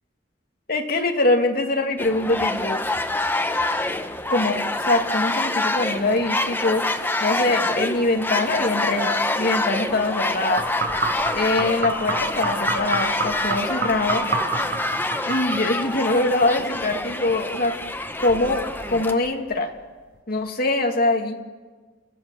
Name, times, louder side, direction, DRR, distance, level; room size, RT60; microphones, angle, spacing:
voice 1, 0.7-2.8 4.3-6.9 7.2-10.7 11.3-14.2 15.3-17.8 18.2-19.7 20.3-21.3, left 2 dB, 55° left, 3 dB, 2.1 m, -23 dB
sound 1, 2.0-19.1, left 2 dB, 10° left, 1.0 m, -26 dB
sound 2, 10.6-16.0 16.3-17.3 17.6-19.5 20.1-20.2, right 3 dB, 60° right, 6.1 m, -29 dB
30.0 x 14.5 x 6.9 m, 1.4 s
head